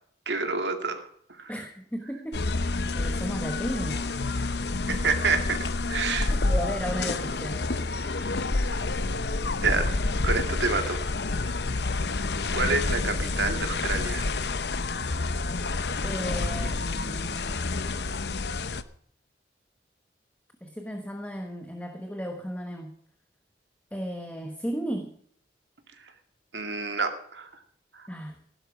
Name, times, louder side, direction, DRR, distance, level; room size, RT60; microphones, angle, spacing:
voice 1, 0.3-1.1 1.4-1.5 4.9-5.6 5.8-6.3 8.7-8.8 9.6-9.9 10.2-11.0 12.5-14.5 26.5-27.5 27.9-28.1, right 4 dB, 80° right, 5 dB, 2.3 m, -28 dB
voice 2, 1.5-2.6 2.9-4.1 4.9-5.1 6.2-7.7 16.0-17.8 20.6-23.0 23.9-25.2 28.1-28.4, equal, 10° left, 5 dB, 1.1 m, -35 dB
sound 1, 2.3-18.8, left 3 dB, 70° left, 0.8 m, -28 dB
16.0 x 12.0 x 5.0 m, 0.62 s
head